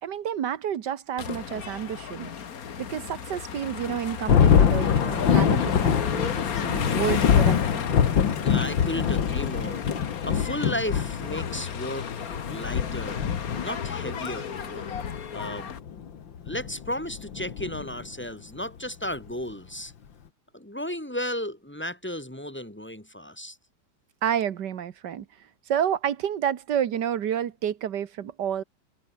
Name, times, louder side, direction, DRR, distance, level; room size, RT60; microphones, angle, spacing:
voice 1, 0.0-2.3 2.8-6.3 6.6-7.9 24.2-25.3 25.7-28.6, right 9 dB, 65° right, 1.7 m, -30 dB
sound 1, 1.2-15.8, left 7 dB, 50° left, 1.7 m, -33 dB
Thunder, 4.3-18.2, left 8 dB, 85° left, 2.4 m, -24 dB
voice 2, 8.4-13.2 13.6-14.8 15.3-15.7 16.5-19.9 20.5-23.6, left 1 dB, 5° left, 3.0 m, -34 dB
omnidirectional pair, 2.0 m